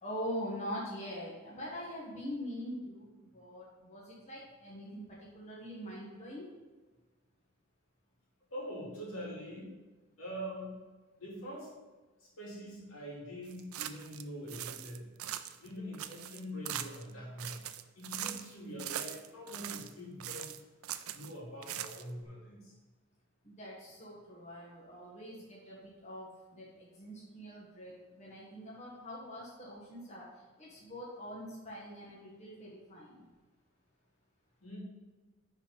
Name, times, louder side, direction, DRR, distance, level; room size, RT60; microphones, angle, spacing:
voice 1, 0.0-3.1 3.3-5.0 5.3-6.4 23.5-26.3 26.5-27.9 28.2-30.2 30.6-33.1, equal, 35° left, -5 dB, 1.6 m, -43 dB
voice 2, 8.5-9.8 10.2-10.8 11.2-11.7 12.2-15.1 15.6-17.6 17.9-20.5 21.1-22.7 34.6-34.8, equal, 70° left, -4 dB, 2.7 m, -44 dB
sound 1, 13.5-14.2 14.5-15.7 15.9-17.1 17.4-18.5 18.8-19.9 20.2-21.3 21.6-22.2, right 11 dB, 75° right, 0.5 m, -41 dB
10.5 x 4.4 x 4.1 m, 1.3 s
head